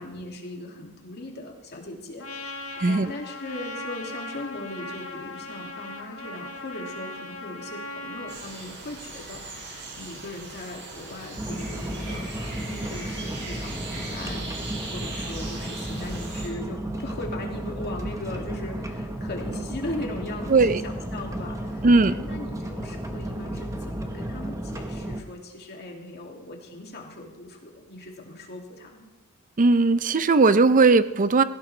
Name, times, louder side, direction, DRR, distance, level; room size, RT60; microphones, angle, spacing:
voice 1, 0.0-2.6 2.9-29.1, left 1 dB, 50° left, 0 dB, 2.3 m, -39 dB
Trumpet, 2.2-8.4, left 2 dB, 70° left, 1.5 m, -38 dB
voice 2, 2.8-3.1 20.5-20.8 21.8-22.1 29.6-31.4, right 3 dB, 35° right, 14 dB, 0.5 m, -18 dB
sound 1, 8.3-16.5, right 2 dB, 55° right, 4.1 m, -39 dB
sound 2, 11.4-25.2, right 1 dB, 15° right, 1.1 m, -33 dB
17.5 x 15.0 x 3.3 m, 1.0 s
head